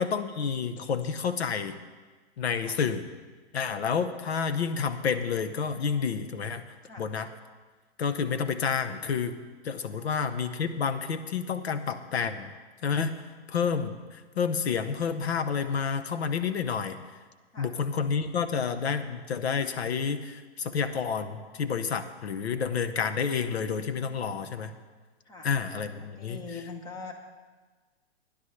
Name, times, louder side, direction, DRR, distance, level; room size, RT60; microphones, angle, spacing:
voice 1, 0.0-1.8 2.4-3.1 3.5-6.6 7.0-7.3 8.0-9.4 9.6-12.5 12.8-13.1 13.5-17.0 17.6-24.7 25.4-26.4, left 6 dB, 75° left, 10 dB, 1.1 m, -29 dB
voice 2, 26.0-27.1, left 4 dB, 10° left, 4 dB, 1.0 m, -43 dB
18.0 x 10.0 x 3.3 m, 1.4 s
hypercardioid pair, 155°, 32 cm